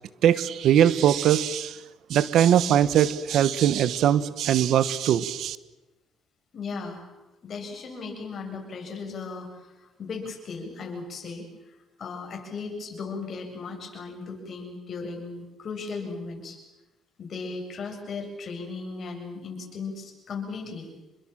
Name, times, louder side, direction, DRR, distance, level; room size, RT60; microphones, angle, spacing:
voice 1, 0.2-1.8 2.1-5.6, right 10 dB, 70° right, 15 dB, 1.2 m, -21 dB
voice 2, 6.5-7.1 7.4-16.6 17.2-20.9, left 4 dB, 50° left, 3 dB, 7.8 m, -37 dB
28.5 x 22.0 x 7.6 m, 1.0 s
cardioid pair, 105°, 0 cm